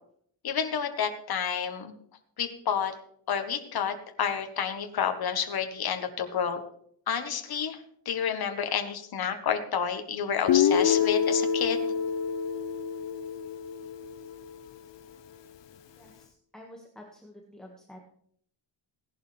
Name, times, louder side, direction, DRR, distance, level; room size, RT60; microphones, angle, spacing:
voice 1, 0.4-1.9 2.4-2.9 3.3-6.6 7.1-7.8 8.0-11.9, left 7 dB, 55° left, 6 dB, 1.4 m, -30 dB
Guitar, 10.5-14.4, left 8 dB, 75° left, 0.9 m, -27 dB
voice 2, 16.5-18.0, left 1 dB, ahead, -1 dB, 1.7 m, -48 dB
17.5 x 11.0 x 3.4 m, 0.64 s
wide cardioid pair, 120°, 44 cm